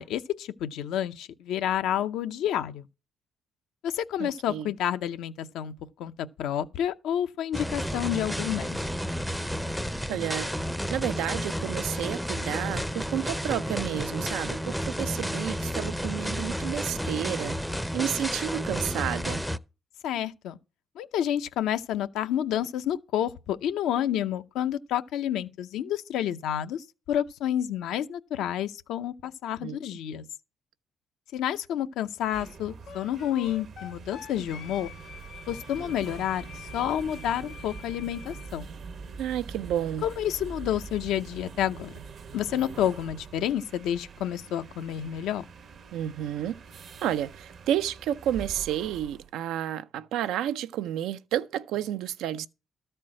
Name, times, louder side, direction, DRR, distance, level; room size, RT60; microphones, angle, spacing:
voice 1, 0.0-2.8 3.8-6.1 6.4-8.9 20.0-20.6 21.0-30.2 31.3-34.9 35.5-36.5 36.7-38.7 40.0-42.0 42.3-45.4, left 10 dB, 85° left, 0.6 m, -29 dB
voice 2, 4.2-4.7 10.1-10.5 10.9-17.6 17.9-19.4 29.6-29.8 39.2-40.1 45.9-46.6 47.0-52.5, right 11 dB, 90° right, 0.5 m, -31 dB
sound 1, 7.5-19.6, equal, ahead, 0.5 m, -31 dB
sound 2, 32.2-49.3, right 5 dB, 60° right, 0.9 m, -44 dB
Wind instrument woodwind instrument, 32.9-38.5, left 8 dB, 70° left, 1.0 m, -46 dB
13.0 x 4.5 x 7.5 m
cardioid pair, 90°, 0 cm